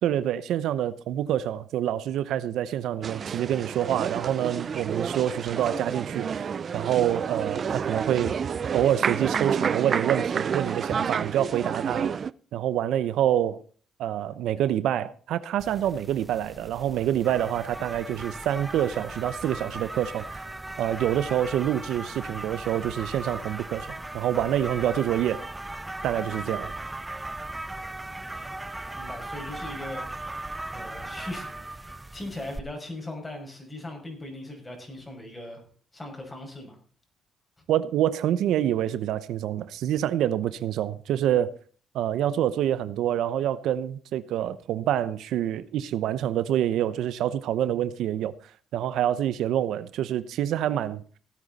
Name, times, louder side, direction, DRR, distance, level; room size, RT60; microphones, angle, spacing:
voice 1, 0.0-8.4 8.7-12.1 12.5-13.6 14.0-20.5 20.8-23.9 24.1-25.4 26.0-26.7 37.7-41.5 41.9-48.3 48.7-51.0, right 11 dB, 80° right, 0.8 m, -26 dB
sound 1, 3.0-12.3, right 6 dB, 50° right, 0.5 m, -29 dB
sound 2, 15.6-32.6, right 2 dB, 15° right, 0.9 m, -38 dB
voice 2, 28.1-28.6 28.9-30.1 30.7-35.6 35.9-36.8, left 1 dB, 20° left, 6.1 m, -39 dB
17.0 x 9.2 x 4.2 m
cardioid pair, 90°, 0 cm